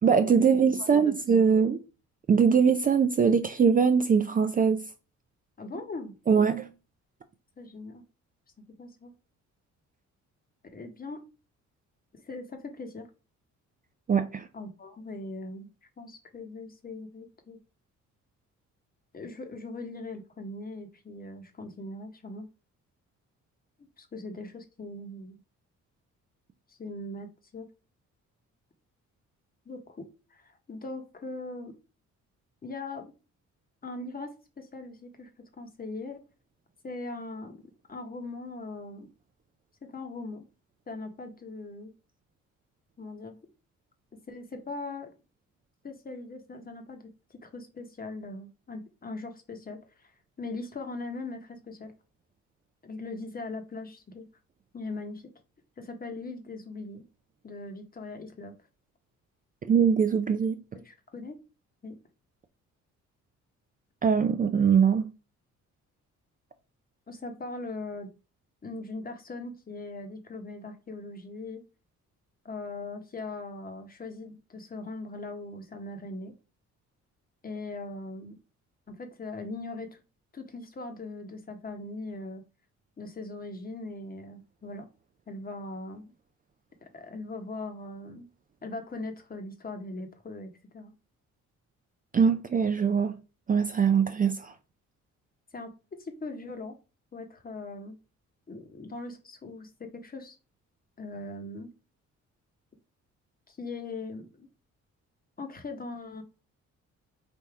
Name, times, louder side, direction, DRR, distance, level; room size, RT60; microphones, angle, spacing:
voice 1, 0.0-1.8 2.3-4.8 6.3-6.7 14.1-14.5 59.7-60.6 64.0-65.1 92.1-93.1 93.5-94.5, right 6 dB, 30° right, 0.4 m, -22 dB
voice 2, 0.8-1.1 1.5-1.7 5.6-6.1 7.6-8.0 8.8-9.1 10.7-11.2 12.1-13.1 14.5-15.7 16.0-17.6 19.1-22.5 24.0-25.4 26.7-27.7 29.7-31.7 32.6-33.1 33.8-35.3 35.6-36.2 36.8-37.6 37.9-39.1 39.9-40.4 40.9-41.9 43.0-43.4 44.3-45.1 45.8-47.0 47.3-50.1 50.4-51.9 52.8-54.2 54.7-55.2 55.8-57.0 57.4-58.5 60.8-61.4 61.8-62.0 67.1-68.1 68.6-71.6 72.4-76.3 77.4-78.4 78.9-80.0 80.3-82.4 83.0-84.8 85.3-86.1 86.8-88.3 88.6-90.9 95.5-95.7 96.0-96.8 97.1-98.0 98.5-100.4 101.0-101.7 103.5-104.5 105.4-106.2, left 2 dB, 30° left, 1.0 m, -40 dB
3.4 x 2.7 x 4.6 m
cardioid pair, 90°, 30 cm